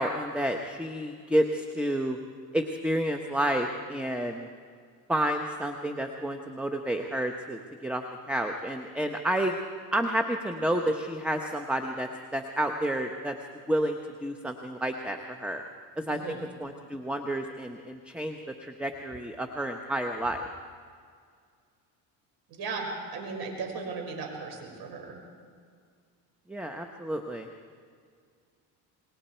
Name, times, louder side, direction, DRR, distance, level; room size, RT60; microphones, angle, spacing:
voice 1, 0.0-2.2 2.5-4.5 5.1-9.6 9.9-13.3 13.7-15.6 16.0-20.4 26.5-27.5, right 1 dB, 5° right, 5 dB, 1.1 m, -30 dB
voice 2, 16.1-16.4 22.5-25.2, right 4 dB, 60° right, 2 dB, 5.7 m, -36 dB
28.0 x 21.0 x 4.5 m, 2.1 s
supercardioid pair, 100°, 42 cm